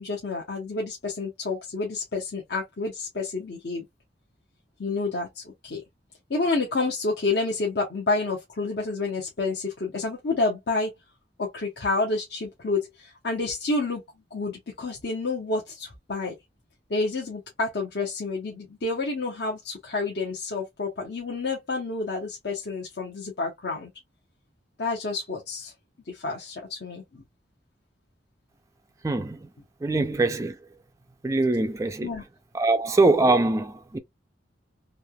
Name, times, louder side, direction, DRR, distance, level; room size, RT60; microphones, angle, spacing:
voice 1, 0.0-3.8 4.8-5.8 6.3-10.9 11.4-14.0 14.3-16.3 16.9-23.9 24.8-25.7 26.1-27.2 29.9-30.0 32.0-32.2, left 3 dB, 60° left, 0.8 m, -29 dB
voice 2, 29.0-29.4 29.8-30.6 31.2-32.1 32.5-34.0, right 2 dB, 15° right, 0.3 m, -23 dB
3.2 x 2.8 x 2.2 m
head